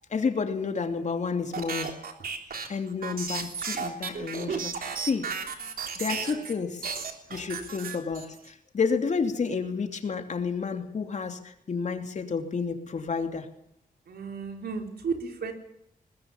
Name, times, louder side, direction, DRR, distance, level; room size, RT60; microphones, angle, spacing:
voice 1, 0.1-1.9 2.7-5.3 6.0-6.9 7.3-13.5, left 5 dB, 50° left, 6 dB, 2.8 m, -30 dB
sound 1, 1.5-6.5 6.8-8.5, right 5 dB, 70° right, 3.4 m, -34 dB
voice 2, 14.1-15.5, right 5 dB, 90° right, 4 dB, 4.3 m, -33 dB
21.0 x 21.0 x 7.3 m, 0.74 s
wide cardioid pair, 160°, 16 cm